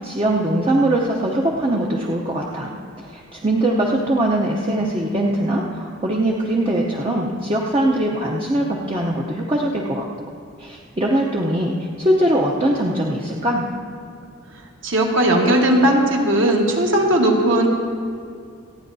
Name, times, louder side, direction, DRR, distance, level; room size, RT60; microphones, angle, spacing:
voice 1, 0.0-2.7 3.0-10.0 10.6-13.7, right 1 dB, 25° right, -1 dB, 0.7 m, -21 dB
voice 2, 14.8-17.7, right 1 dB, 60° right, 0 dB, 1.5 m, -17 dB
26.5 x 9.5 x 2.7 m, 2.3 s
head